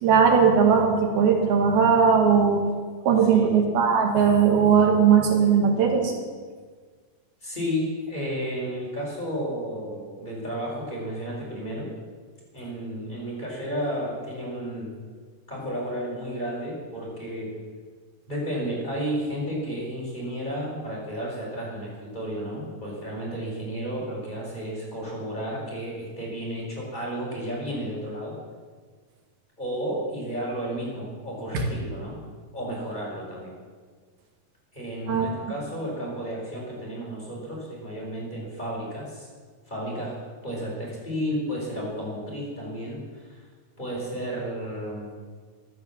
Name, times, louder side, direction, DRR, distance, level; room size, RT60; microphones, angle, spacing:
voice 1, 0.0-2.6 3.1-6.1 35.1-35.3, right 6 dB, 90° right, 2 dB, 3.9 m, -19 dB
voice 2, 3.2-3.6 7.4-11.9 12.5-15.0 15.5-17.6 18.3-28.4 29.6-32.2 32.5-33.5 34.7-39.3 39.7-40.2 40.4-43.4 43.8-45.1, equal, 10° left, -5 dB, 4.8 m, -32 dB
14.0 x 12.5 x 7.3 m, 1.5 s
omnidirectional pair, 4.3 m